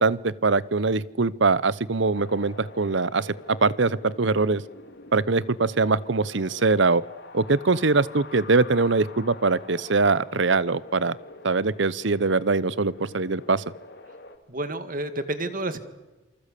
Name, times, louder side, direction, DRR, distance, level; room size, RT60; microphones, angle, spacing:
voice 1, 0.0-4.6 5.1-7.0 7.3-11.2 11.4-13.6, right 3 dB, 65° right, 20 dB, 0.8 m, -22 dB
Wind, 2.1-14.4, left 2 dB, 55° left, 3.3 m, -46 dB
voice 2, 14.5-15.8, right 2 dB, 45° right, 11 dB, 2.0 m, -30 dB
28.0 x 25.0 x 8.4 m, 1.1 s
head